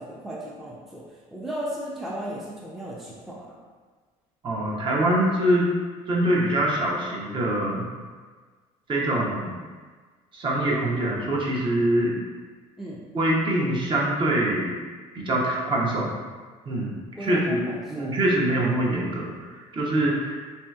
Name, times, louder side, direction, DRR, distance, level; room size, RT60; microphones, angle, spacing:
voice 1, 0.0-3.5 12.8-13.0 17.2-18.1, right 1 dB, ahead, -5 dB, 0.4 m, -35 dB
voice 2, 4.4-5.7 6.1-7.9 8.9-9.6 10.3-12.2 13.1-14.7 15.1-16.2 16.7-16.9 17.2-20.5, right 1 dB, 35° right, -3 dB, 0.7 m, -24 dB
3.2 x 2.7 x 2.3 m, 1.4 s
supercardioid pair, 95°, 14 cm